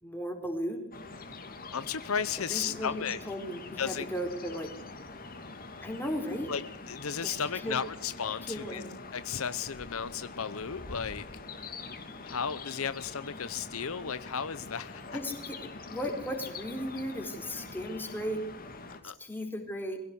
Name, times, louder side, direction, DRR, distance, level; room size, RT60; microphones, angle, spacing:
voice 1, 0.0-0.8 2.5-4.7 5.8-6.5 7.2-7.4 7.6-7.7 8.5-8.9 15.1-15.6 15.9-18.4 19.0-20.0, equal, 10° left, 3 dB, 4.2 m, -35 dB
sound 1, 0.9-19.0, left 3 dB, 40° left, 2.8 m, -45 dB
voice 2, 1.7-3.2 3.8-4.1 6.5-6.6 6.9-8.8 9.1-11.3 12.2-15.2 19.0-19.1, left 7 dB, 65° left, 14 dB, 0.8 m, -34 dB
22.0 x 16.5 x 8.2 m, 0.69 s
head